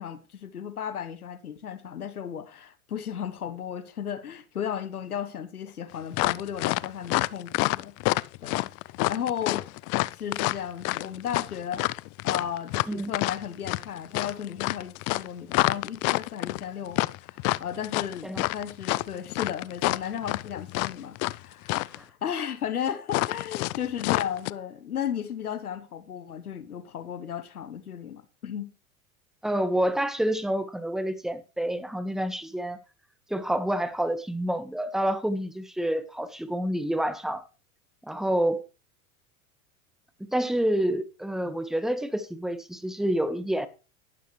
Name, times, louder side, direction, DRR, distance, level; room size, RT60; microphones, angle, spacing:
voice 1, 0.0-8.7 9.1-9.7 10.1-11.9 12.2-28.7, left 9 dB, 85° left, 1.3 m, -35 dB
sound 1, 6.1-21.4 21.6-22.0 23.1-24.5, left 22 dB, 35° left, 0.4 m, -27 dB
voice 2, 29.4-32.8 33.3-37.4 38.1-38.6 40.3-43.7, right 1 dB, ahead, 1.4 m, -28 dB
12.0 x 11.5 x 3.2 m
hypercardioid pair, 95°, 43 cm